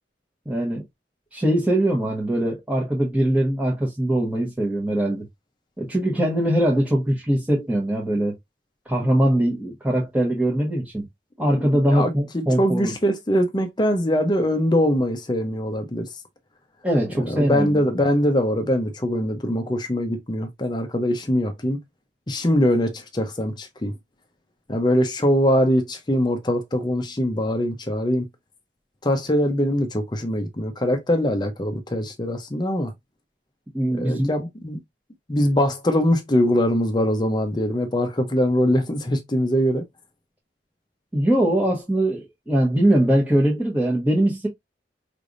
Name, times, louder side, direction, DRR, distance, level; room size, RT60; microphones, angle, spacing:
voice 1, 0.5-0.8 1.3-5.2 5.8-8.3 8.9-11.1 11.4-12.9 16.8-17.8 33.7-34.3 41.1-44.5, right 1 dB, 10° right, 1.1 m, -21 dB
voice 2, 11.9-16.1 17.2-21.8 22.3-23.9 24.7-28.3 29.0-32.9 33.9-34.8 35.3-39.8, equal, 25° left, 0.6 m, -22 dB
5.0 x 3.3 x 2.5 m
head